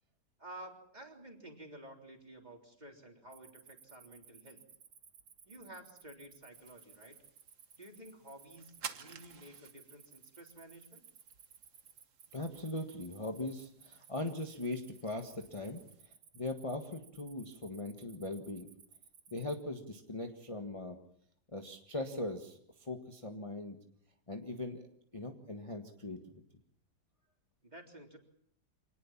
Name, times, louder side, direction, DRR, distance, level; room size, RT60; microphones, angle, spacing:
voice 1, 0.4-4.6 5.5-7.2 7.8-11.0 27.6-28.2, right 1 dB, 25° right, 3 dB, 3.7 m, -52 dB
Cricket, 3.3-19.6, right 7 dB, 80° right, 2.2 m, -59 dB
sound 1, 6.5-16.0, right 6 dB, 50° right, 1.5 m, -54 dB
voice 2, 12.3-18.7 19.3-21.0 21.5-23.8 24.3-24.9 25.1-26.2, left 2 dB, 20° left, 3 dB, 1.6 m, -40 dB
26.0 x 19.0 x 7.3 m, 0.66 s
omnidirectional pair, 1.9 m